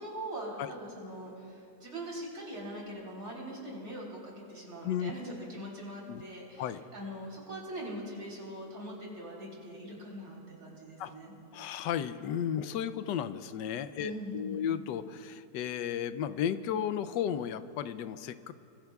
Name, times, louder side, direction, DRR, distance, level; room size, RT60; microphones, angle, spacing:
voice 1, 0.0-11.3 14.0-14.6, right 1 dB, 60° right, -4 dB, 4.2 m, -42 dB
voice 2, 11.5-18.5, left 9 dB, 80° left, 13 dB, 1.2 m, -34 dB
24.5 x 22.0 x 2.3 m, 2.4 s
omnidirectional pair, 1.9 m